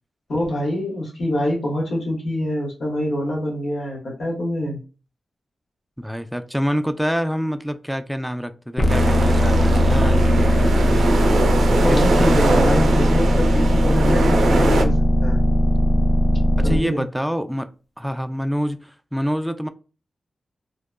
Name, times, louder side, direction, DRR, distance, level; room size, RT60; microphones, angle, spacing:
voice 1, 0.3-4.8 11.8-15.4 16.6-17.0, left 1 dB, 70° left, 1.2 m, -25 dB
voice 2, 6.0-11.1 11.7-12.9 16.6-17.7 18.0-19.7, equal, 5° right, 0.3 m, -27 dB
sound 1, 8.8-16.8, equal, 45° left, 0.6 m, -18 dB
sound 2, 8.9-14.8, right 2 dB, 85° right, 0.4 m, -22 dB
2.8 x 2.2 x 2.2 m
cardioid pair, 50°, 0 cm